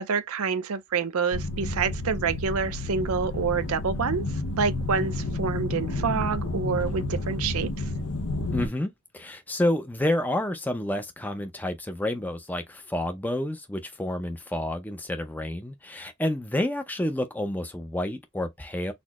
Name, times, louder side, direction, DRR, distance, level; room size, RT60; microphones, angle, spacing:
voice 1, 0.0-7.9, right 5 dB, 75° right, 0.5 m, -28 dB
sound 1, 1.3-8.7, left 2 dB, 75° left, 0.7 m, -30 dB
voice 2, 8.5-18.9, left 1 dB, 10° left, 0.5 m, -29 dB
4.2 x 2.1 x 2.9 m
head